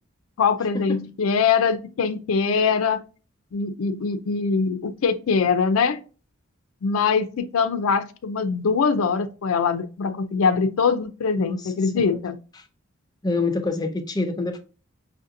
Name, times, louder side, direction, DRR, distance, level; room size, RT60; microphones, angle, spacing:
voice 1, 0.4-3.0 3.5-6.0 6.8-12.4, left 5 dB, 85° left, 0.4 m, -22 dB
voice 2, 11.4-12.2 12.6-12.7 13.2-14.6, left 3 dB, 20° left, 0.4 m, -27 dB
5.6 x 2.6 x 2.6 m
head